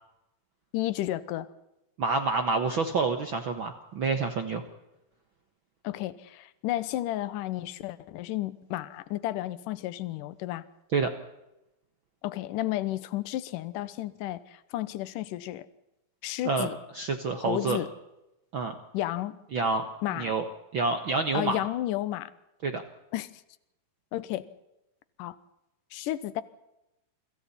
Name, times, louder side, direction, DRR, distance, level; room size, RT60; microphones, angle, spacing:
voice 1, 0.7-1.5 5.8-10.7 12.2-15.7 16.2-16.8 17.4-17.9 18.9-19.4 20.0-20.3 21.3-22.3 23.1-23.3 24.1-24.5 25.2-25.4 25.9-26.4, left 14 dB, 70° left, 14 dB, 2.4 m, -32 dB
voice 2, 2.0-4.6 10.9-11.1 16.4-17.8 18.5-18.7 19.5-19.9 20.1-20.4 20.7-21.6 22.6-22.8, right 4 dB, 70° right, 6 dB, 1.2 m, -28 dB
29.5 x 25.0 x 4.3 m, 0.92 s
omnidirectional pair, 4.3 m